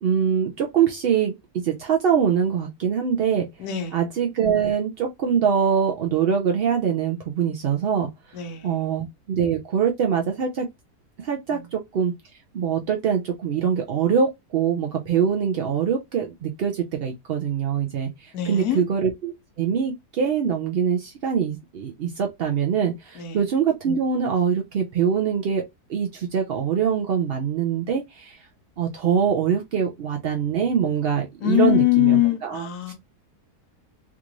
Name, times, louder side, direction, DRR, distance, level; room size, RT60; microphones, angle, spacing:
voice 1, 0.0-3.5 3.9-8.1 8.6-10.7 11.2-12.1 12.5-28.4 28.8-32.9, right 7 dB, 65° right, 0.5 m, -23 dB
voice 2, 3.6-4.0 8.3-8.9 11.5-11.6 18.3-18.8 23.1-23.4 31.4-32.9, left 14 dB, 80° left, 1.3 m, -22 dB
3.6 x 2.5 x 2.9 m
omnidirectional pair, 1.6 m